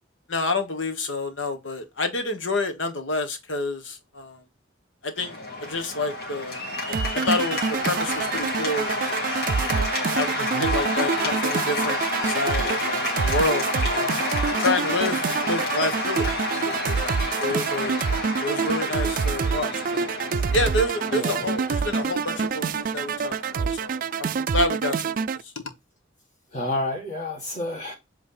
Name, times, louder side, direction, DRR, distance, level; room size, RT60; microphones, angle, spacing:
voice 1, 0.3-4.4 5.0-6.6 6.9-9.2 9.7-14.2 14.6-16.7 17.0-18.0 18.4-20.1 20.5-25.6, left 2 dB, 85° left, 1.4 m, -29 dB
Cheering / Applause, 5.2-24.4, left 2 dB, 55° left, 2.1 m, -30 dB
sound 1, 6.9-25.4, right 6 dB, 45° right, 0.3 m, -27 dB
voice 2, 10.4-10.7 21.2-21.5 26.5-27.9, left 1 dB, 40° left, 1.9 m, -30 dB
8.0 x 3.4 x 3.9 m
head